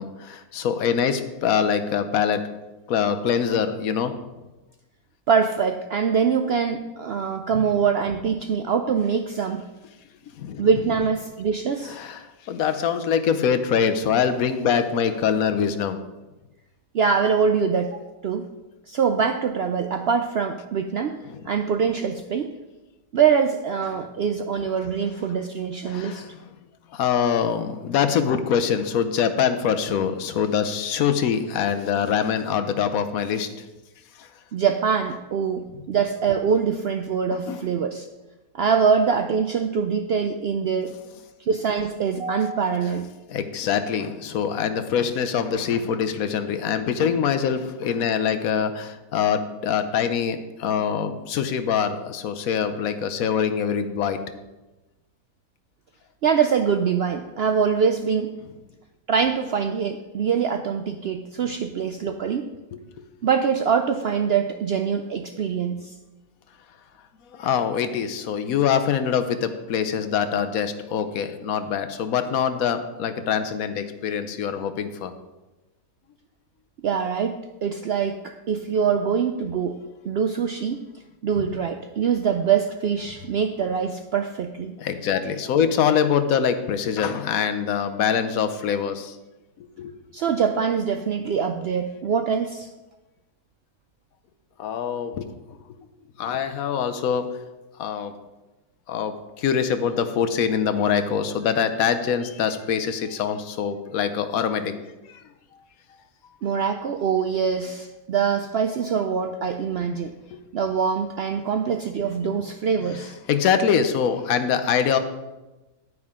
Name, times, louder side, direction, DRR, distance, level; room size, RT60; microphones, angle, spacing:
voice 1, 0.0-2.5 2.9-4.2 7.5-7.6 10.4-10.7 11.9-16.0 21.3-21.5 23.9-24.0 25.9-26.5 26.9-33.5 34.2-34.3 37.5-37.7 43.3-54.2 62.7-63.0 67.3-75.1 84.8-89.2 89.6-89.9 94.6-95.6 96.2-97.3 97.8-98.1 98.9-104.8 105.1-105.2 110.3-110.4 112.8-115.0, left 7 dB, 70° left, 10 dB, 1.2 m, -24 dB
voice 2, 5.3-9.6 10.6-12.0 16.9-18.5 18.9-21.2 21.5-22.5 23.1-26.3 34.5-38.1 38.5-40.9 41.4-43.1 56.2-58.3 59.1-62.5 63.2-65.9 76.8-79.8 80.0-80.9 81.2-84.7 90.1-92.7 106.4-110.1 110.5-113.2, right 6 dB, 70° right, 6 dB, 0.6 m, -24 dB
9.6 x 9.5 x 3.7 m, 1.1 s
omnidirectional pair, 1.6 m